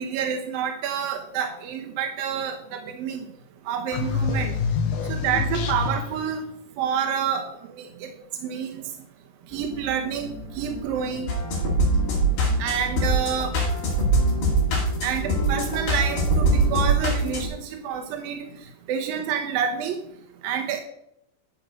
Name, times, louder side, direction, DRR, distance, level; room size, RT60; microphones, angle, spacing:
voice 1, 0.0-3.2 3.7-4.6 5.1-6.4 6.8-8.1 8.4-8.8 9.5-11.3 12.6-13.5 15.0-18.5 18.9-20.0 20.4-20.8, right 7 dB, 75° right, 4 dB, 2.2 m, -28 dB
sound 1, 3.9-6.3, left 5 dB, 90° left, 1.7 m, -26 dB
sound 2, 9.5-16.9, right 1 dB, ahead, 2.1 m, -38 dB
sound 3, 11.3-17.4, right 2 dB, 55° left, 3.6 m, -23 dB
11.0 x 7.6 x 5.3 m, 0.76 s
omnidirectional pair, 5.3 m